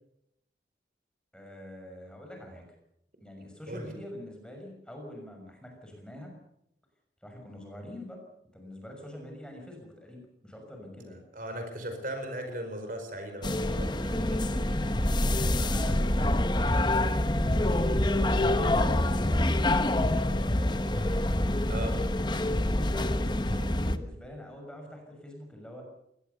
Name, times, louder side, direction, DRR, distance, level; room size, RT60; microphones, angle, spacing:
voice 1, 1.3-2.6 3.2-6.3 7.2-8.2 8.5-11.2 15.2-20.8 22.2-22.3 22.6-25.8, left 1 dB, 5° left, 2 dB, 6.2 m, -45 dB
voice 2, 11.3-14.9 21.7-22.0, right 1 dB, 50° right, 5 dB, 4.9 m, -38 dB
sound 1, 13.4-24.0, left 1 dB, 25° left, 1.1 m, -26 dB
22.5 x 19.0 x 6.9 m, 0.79 s
head